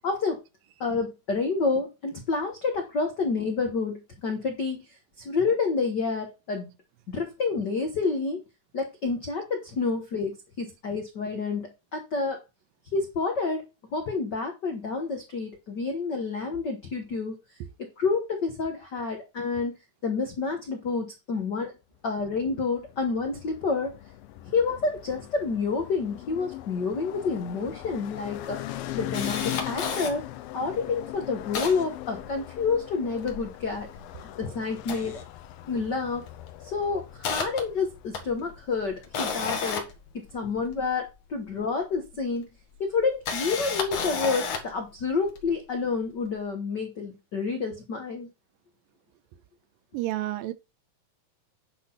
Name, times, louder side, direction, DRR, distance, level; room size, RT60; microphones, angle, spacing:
voice 1, 0.0-0.4 0.8-6.7 7.1-8.4 8.7-12.4 12.9-13.6 13.9-17.4 17.8-19.7 20.0-21.7 22.0-23.9 24.5-30.2 30.5-33.9 34.4-35.2 35.7-36.2 36.6-39.8 40.1-42.5 42.8-48.3, left 4 dB, 70° left, 1.0 m, -29 dB
sound 1, 22.2-39.6, left 15 dB, 90° left, 2.5 m, -40 dB
Camera, 27.5-27.6 27.9-28.0 28.5-30.1 30.7-30.8 31.1-32.7 33.1-34.3 34.7-35.9 36.1-36.4 36.8-40.9 41.9-42.0 43.0-44.8 45.4-45.5, left 5 dB, 55° left, 2.4 m, -33 dB
voice 2, 49.9-50.5, right 15 dB, 85° right, 2.5 m, -29 dB
10.0 x 4.1 x 5.6 m
omnidirectional pair, 4.0 m